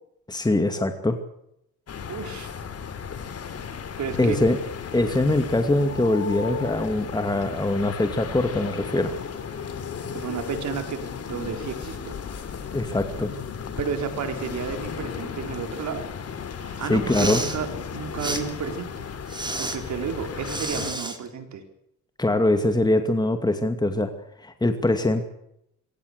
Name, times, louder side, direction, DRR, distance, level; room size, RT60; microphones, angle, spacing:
voice 1, 0.3-1.2 4.2-4.6 4.9-9.1 12.7-13.3 16.8-17.4 22.2-24.1 24.4-25.3, left 2 dB, 15° left, 7 dB, 2.4 m, -23 dB
sound 1, 1.9-20.9, left 6 dB, 55° left, 3.6 m, -35 dB
voice 2, 2.1-2.5 4.0-4.4 10.1-11.0 11.3-12.1 13.8-16.0 16.6-19.1 19.6-21.6, right 6 dB, 70° right, 6 dB, 4.6 m, -32 dB
Respiratory sounds, 17.0-17.6 18.2-18.4 19.3-19.8 20.4-21.2, right 2 dB, 15° right, 4.0 m, -30 dB
24.0 x 17.5 x 8.3 m, 0.78 s
cardioid pair, 90°, 30 cm